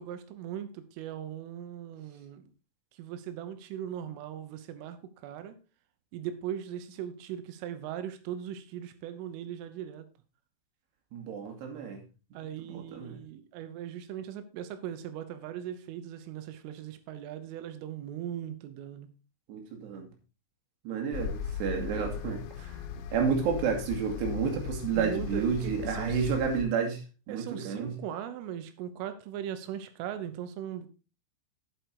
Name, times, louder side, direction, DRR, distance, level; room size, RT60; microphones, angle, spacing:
voice 1, 0.0-2.5 2.9-5.6 6.1-10.1 12.3-19.1 23.0-23.1 24.9-26.3 27.3-30.9, right 10 dB, 85° right, 3.5 m, -39 dB
voice 2, 11.1-12.0 12.3-12.4 12.7-13.2 19.5-20.1 20.8-22.8 23.1-27.0 27.3-27.9, right 6 dB, 65° right, 3.9 m, -31 dB
sound 1, 21.1-26.7, left 8 dB, 80° left, 3.0 m, -38 dB
8.0 x 8.0 x 4.6 m
omnidirectional pair, 5.6 m